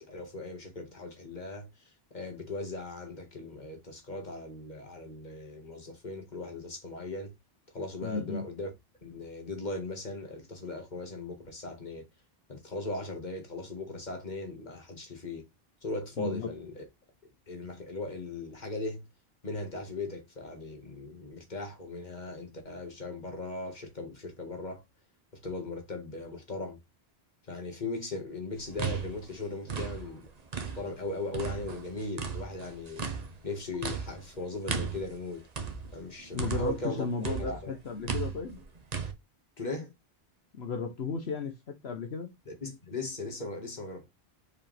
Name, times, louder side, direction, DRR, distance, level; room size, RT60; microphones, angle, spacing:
voice 1, 0.0-7.3 7.7-8.7 9.0-12.0 12.5-15.4 15.8-16.8 17.5-19.0 19.4-24.8 25.4-26.8 27.5-30.3 30.7-33.1 33.4-35.5 35.9-37.7 39.6-39.9 42.5-44.1, left 2 dB, 45° left, 2.0 m, -38 dB
voice 2, 8.0-8.4 16.2-16.5 36.3-38.6 40.5-42.3, left 4 dB, 80° left, 1.2 m, -34 dB
sound 1, 28.6-31.0 31.3-36.9 37.2-39.1, right 5 dB, 40° right, 1.1 m, -36 dB
6.7 x 4.9 x 3.4 m
omnidirectional pair, 1.1 m